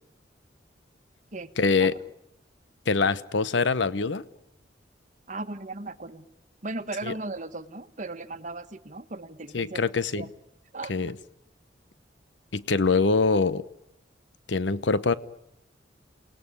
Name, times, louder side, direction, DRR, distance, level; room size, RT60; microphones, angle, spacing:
voice 1, 1.6-1.9 2.9-4.2 7.0-7.1 9.5-10.3 10.9-11.1 12.5-13.6 14.5-15.1, left 4 dB, 85° left, 16 dB, 0.9 m, -24 dB
voice 2, 5.3-6.3 6.6-9.8 10.1-10.3 10.7-10.9, right 2 dB, 45° right, 11 dB, 1.2 m, -37 dB
28.5 x 20.0 x 9.9 m, 0.82 s
head